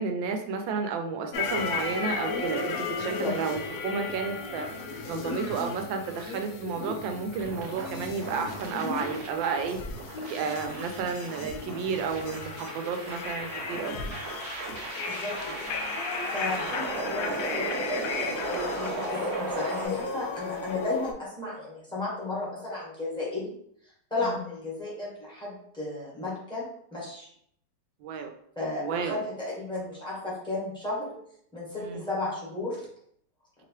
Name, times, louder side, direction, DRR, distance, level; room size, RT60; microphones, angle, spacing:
voice 1, 0.0-4.7 5.1-9.8 10.3-13.9 16.4-16.7 24.2-24.3 28.0-28.3 28.8-29.2 31.8-32.1, right 5 dB, 85° right, 5 dB, 1.3 m, -32 dB
sound 1, 1.3-21.1, left 4 dB, 90° left, 0.7 m, -35 dB
voice 2, 2.9-3.3 15.0-15.7 16.3-18.1 18.5-23.5 24.1-27.3 28.5-31.2 31.5-32.8, left 2 dB, 5° left, -7 dB, 1.1 m, -34 dB
sound 2, 7.4-19.9, right 3 dB, 65° right, 1.0 m, -37 dB
3.2 x 2.9 x 3.0 m, 0.68 s
omnidirectional pair, 2.0 m